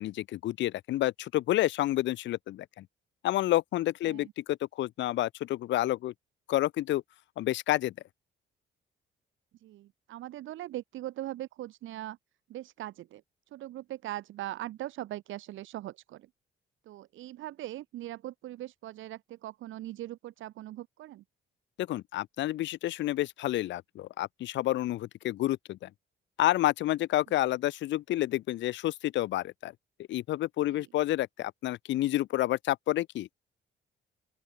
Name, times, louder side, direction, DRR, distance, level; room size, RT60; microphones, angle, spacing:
voice 1, 0.0-2.8 3.2-6.1 6.5-7.0 7.4-7.9 21.8-25.9 26.4-29.7 30.1-33.3, left 15 dB, 65° left, 0.5 m, -29 dB
voice 2, 9.6-12.2 12.5-13.2 13.5-16.3 16.9-21.2 30.7-30.9, right 14 dB, 80° right, 1.2 m, -40 dB
open air
cardioid pair, 90°, 20 cm